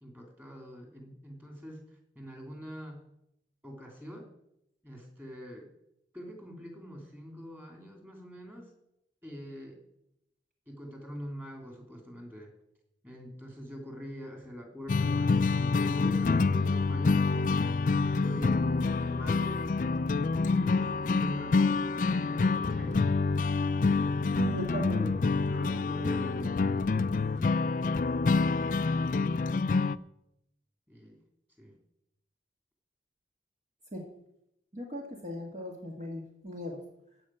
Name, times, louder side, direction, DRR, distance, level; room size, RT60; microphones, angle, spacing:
voice 1, 0.0-1.9 2.1-3.0 3.6-4.3 4.8-5.7 6.1-8.7 9.2-9.8 10.7-12.5 13.0-18.6 19.0-19.6 20.1-23.1 23.8-24.2 24.8-25.1 25.5-28.1 30.9-31.2 31.6-31.7, equal, 10° right, 1 dB, 3.0 m, -44 dB
sound 1, 14.9-30.0, left 4 dB, 45° left, 0.4 m, -27 dB
voice 2, 24.4-25.0 33.9-34.1 34.7-36.8, equal, 40° right, 0 dB, 1.8 m, -37 dB
15.0 x 5.3 x 9.1 m, 0.82 s
head